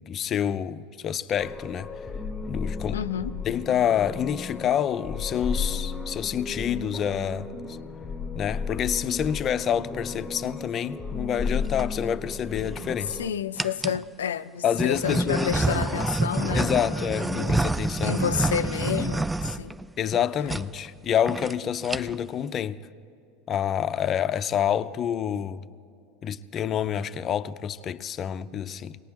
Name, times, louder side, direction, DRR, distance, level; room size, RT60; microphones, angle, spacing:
voice 1, 0.0-1.9 2.5-3.0 3.5-7.8 8.3-13.2 14.6-15.8 16.5-18.2 20.0-22.8 23.5-25.6 26.2-29.0, left 9 dB, 35° left, 0.6 m, -28 dB
sound 1, 1.4-13.3, left 4 dB, 15° left, 1.1 m, -34 dB
voice 2, 2.9-3.4 13.1-17.6 18.0-19.8, left 9 dB, 80° left, 0.5 m, -30 dB
sound 2, 11.5-11.9 12.6-13.1 13.6-14.0 14.8-20.2 20.5-20.7 21.0-21.1 21.3-21.5 21.8-22.3, right 2 dB, 10° right, 0.3 m, -28 dB
25.0 x 19.0 x 3.0 m
hypercardioid pair, 85°, 0 cm